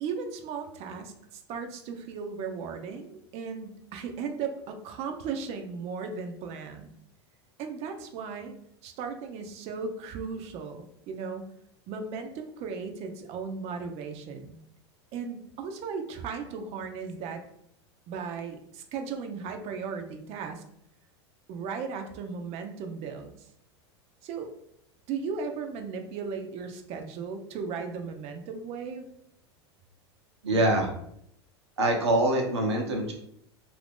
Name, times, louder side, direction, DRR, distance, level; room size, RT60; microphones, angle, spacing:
voice 1, 0.0-6.9 7.6-8.5 8.8-11.5 11.9-14.6 15.1-17.4 18.1-20.6 21.5-23.3 24.2-24.5 25.1-29.1, right 5 dB, 50° right, 5 dB, 0.6 m, -36 dB
voice 2, 30.4-30.9 31.8-33.1, right 1 dB, 90° right, 1 dB, 0.8 m, -24 dB
2.8 x 2.6 x 3.5 m, 0.72 s
hypercardioid pair, 95°, 14 cm